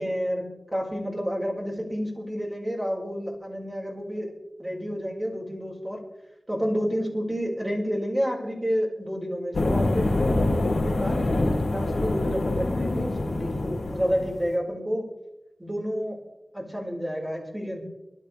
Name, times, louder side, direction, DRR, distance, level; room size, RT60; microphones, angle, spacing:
voice 1, 0.0-4.3 4.6-6.0 6.5-11.2 11.7-15.0 15.6-16.2 16.5-17.8, equal, 20° right, -2 dB, 5.3 m, -30 dB
sound 1, 9.5-14.4, left 2 dB, 90° left, 3.9 m, -25 dB
24.0 x 12.5 x 3.5 m, 0.96 s
wide cardioid pair, 55°, 0 cm